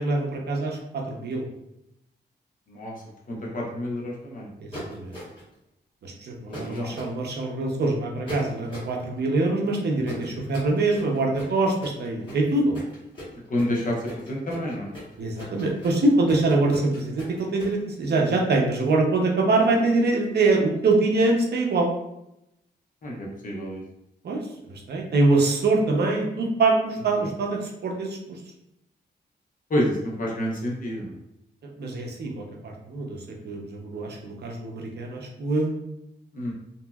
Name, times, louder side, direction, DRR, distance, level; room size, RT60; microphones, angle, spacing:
voice 1, 0.0-1.4 4.6-5.2 6.0-12.7 15.2-21.9 24.2-28.4 31.8-35.8, right 2 dB, 65° right, 0 dB, 0.6 m, -24 dB
voice 2, 2.7-3.0 3.3-4.5 6.5-6.9 10.0-10.3 13.5-14.9 23.0-23.8 27.1-27.2 29.7-31.2 36.3-36.5, left 1 dB, 45° left, -2 dB, 0.8 m, -29 dB
sound 1, 4.7-5.5 6.5-7.1 8.3-9.0 10.0-17.8, equal, 30° left, 1.4 m, -39 dB
2.9 x 2.6 x 2.3 m, 0.84 s
wide cardioid pair, 125°, 18 cm